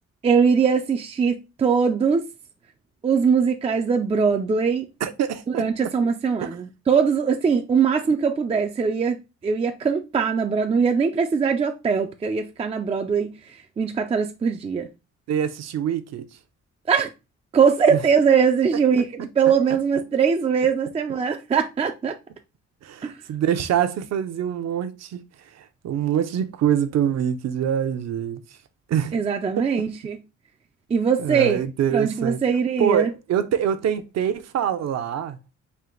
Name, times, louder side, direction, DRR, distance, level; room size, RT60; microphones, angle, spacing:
voice 1, 0.2-2.3 3.0-4.9 5.6-9.2 9.4-13.3 13.8-14.9 16.9-17.1 17.5-22.1 23.0-23.1 29.1-30.2 30.9-31.6 31.9-33.1, right 6 dB, 20° right, 0.3 m, -21 dB
voice 2, 5.0-5.9 6.4-6.5 15.3-16.3 17.9-18.0 22.8-28.6 28.9-29.2 29.6-29.7 31.2-32.4 32.8-35.4, right 9 dB, 60° right, 0.6 m, -25 dB
4.5 x 2.5 x 3.7 m
cardioid pair, 140°, 29 cm